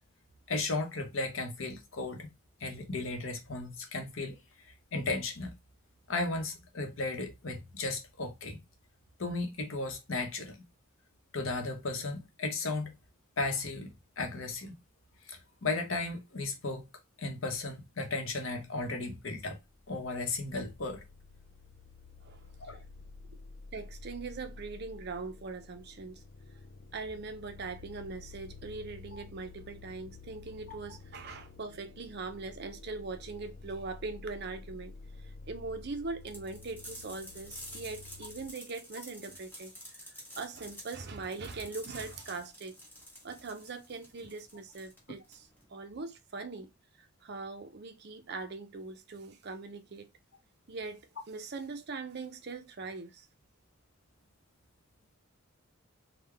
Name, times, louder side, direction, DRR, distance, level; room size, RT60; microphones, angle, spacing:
voice 1, 0.5-2.3 2.6-5.5 6.1-8.6 9.2-10.6 11.3-13.0 13.4-14.7 15.2-16.9 17.2-19.6 19.9-21.0 22.6-22.8 29.1-29.2 30.7-30.8, left 3 dB, 65° left, 0.8 m, -35 dB
sound 1, 19.6-38.5, left 3 dB, 45° left, 0.3 m, -51 dB
voice 2, 22.2-22.8 23.7-26.2 26.9-34.9 35.2-42.7 43.2-46.7 47.0-50.1 50.7-53.3, right 3 dB, 50° right, 0.5 m, -41 dB
sound 2, 36.3-45.7, equal, 10° left, 1.0 m, -49 dB
3.6 x 2.2 x 3.3 m
head